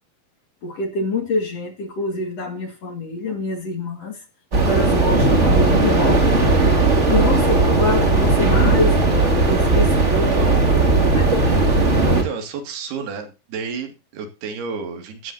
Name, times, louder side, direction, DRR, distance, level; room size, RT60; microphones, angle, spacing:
voice 1, 0.6-4.2 4.6-6.5 7.1-10.6 11.1-11.7, left 3 dB, 45° left, 2.7 m, -26 dB
sound 1, 4.5-12.2, right 3 dB, 25° right, 2.0 m, -17 dB
voice 2, 10.0-10.7 12.1-15.3, right 5 dB, 75° right, 4.2 m, -31 dB
15.5 x 12.5 x 2.7 m
omnidirectional pair, 4.6 m